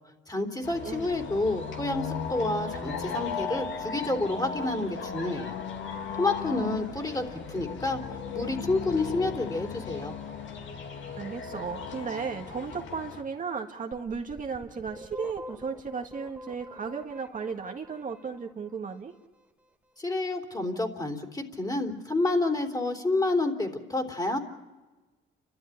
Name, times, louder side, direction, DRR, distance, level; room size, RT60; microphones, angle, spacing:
voice 1, 0.3-5.6 6.2-8.0 8.3-10.1 20.0-24.4, left 2 dB, 20° left, 4 dB, 3.4 m, -29 dB
sound 1, 0.6-13.2, left 6 dB, 70° left, 2.8 m, -36 dB
voice 2, 11.2-19.1, right 5 dB, 40° right, 3 dB, 1.8 m, -35 dB
sound 2, 13.9-18.8, left 1 dB, 5° right, 1.7 m, -45 dB
29.5 x 13.0 x 9.8 m, 1.2 s
cardioid pair, 90°, 20 cm